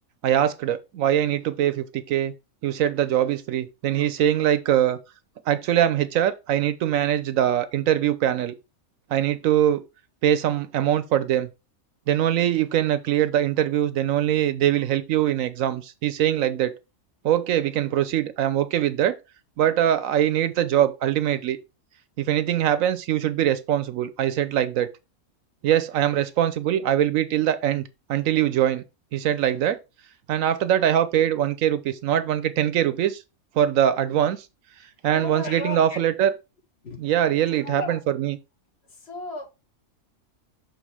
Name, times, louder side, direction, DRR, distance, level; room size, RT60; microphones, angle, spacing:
voice 1, 0.2-2.3 2.6-5.0 5.5-8.5 9.1-9.8 10.2-11.5 12.1-16.7 17.2-19.2 19.6-21.6 22.2-24.9 25.6-28.8 29.1-29.8 30.3-33.2 33.5-34.5 35.0-36.4 37.0-38.4, right 11 dB, 75° right, 1.0 m, -22 dB
voice 2, 35.1-36.0 36.8-37.0 37.6-38.0 39.0-39.5, left 3 dB, 45° left, 2.0 m, -34 dB
6.5 x 3.3 x 4.7 m
omnidirectional pair, 1.5 m